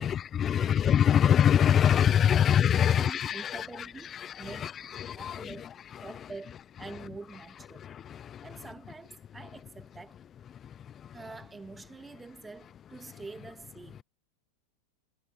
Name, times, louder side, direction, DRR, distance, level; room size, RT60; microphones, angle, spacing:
voice 1, 0.0-6.1 7.7-8.5 10.6-11.2, left 9 dB, 30° left, 0.4 m, -25 dB
voice 2, 2.8-5.7 6.0-7.8 8.4-10.2 11.1-14.0, right 3 dB, 15° right, 1.7 m, -46 dB
hypercardioid pair, 100°, 0 cm